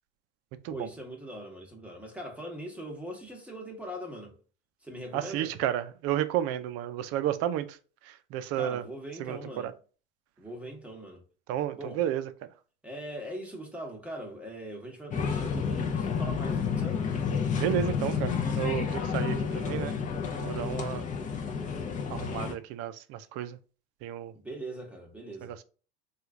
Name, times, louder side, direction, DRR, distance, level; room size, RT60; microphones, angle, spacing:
voice 1, 0.7-4.4 4.8-5.6 8.5-9.7 10.4-11.2 11.8-12.0 12.8-17.0 24.4-25.5, right 1 dB, 5° right, 1.0 m, -41 dB
voice 2, 5.1-7.7 8.3-8.8 9.2-9.7 11.5-12.2 17.6-20.0 20.4-21.1 22.1-23.6 24.0-24.3 25.4-25.5, right 11 dB, 50° right, 0.5 m, -31 dB
sound 1, 15.1-22.5, left 6 dB, 25° left, 0.6 m, -30 dB
3.0 x 2.4 x 3.6 m
supercardioid pair, 110°, 33 cm